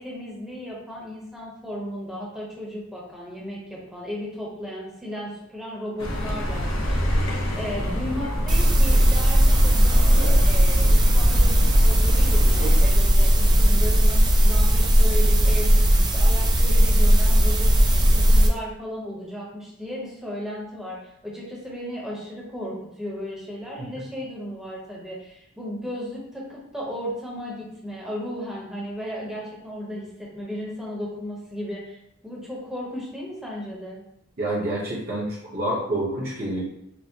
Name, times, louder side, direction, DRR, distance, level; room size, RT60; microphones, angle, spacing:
voice 1, 0.0-7.2 7.5-17.7 18.0-34.0, equal, 5° right, -5 dB, 0.8 m, -35 dB
Accelerating revving vroom, 6.0-12.9, equal, 85° left, 0.8 m, -26 dB
sound 1, 8.5-18.5, equal, 20° right, 0.3 m, -17 dB
voice 2, 34.4-36.6, right 1 dB, 45° right, -7 dB, 0.9 m, -27 dB
4.4 x 2.0 x 2.8 m, 0.80 s
head